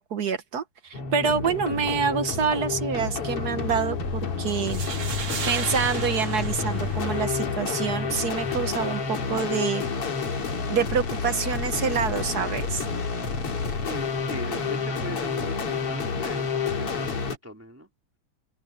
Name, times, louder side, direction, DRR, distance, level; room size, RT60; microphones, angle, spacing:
voice 1, 0.0-4.8 5.5-9.9 10.7-12.8, right 6 dB, 75° right, 0.9 m, -27 dB
sound 1, 0.9-17.4, left 5 dB, 50° left, 3.6 m, -30 dB
Engine, 1.1-9.1, left 5 dB, 85° left, 4.8 m, -36 dB
sound 2, 4.5-7.5, right 5 dB, 45° right, 3.1 m, -35 dB
voice 2, 13.8-17.9, equal, 5° right, 3.2 m, -39 dB
open air
omnidirectional pair, 3.5 m